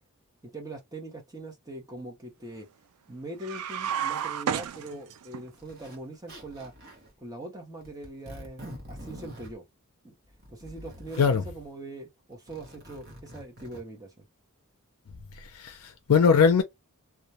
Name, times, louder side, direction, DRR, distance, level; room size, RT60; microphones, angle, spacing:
voice 1, 0.5-2.7 3.1-6.7 7.2-9.6 10.0-10.1 10.5-14.3, right 2 dB, 15° right, 0.7 m, -42 dB
sound 1, 3.4-5.4, right 8 dB, 85° right, 0.4 m, -31 dB
Zipper (clothing), 5.6-6.0 6.3-7.1 7.8-9.5 10.3-11.3 12.3-13.8, equal, 45° right, 0.8 m, -45 dB
voice 2, 15.5-16.6, left 6 dB, 70° left, 0.4 m, -21 dB
2.3 x 2.1 x 2.7 m
head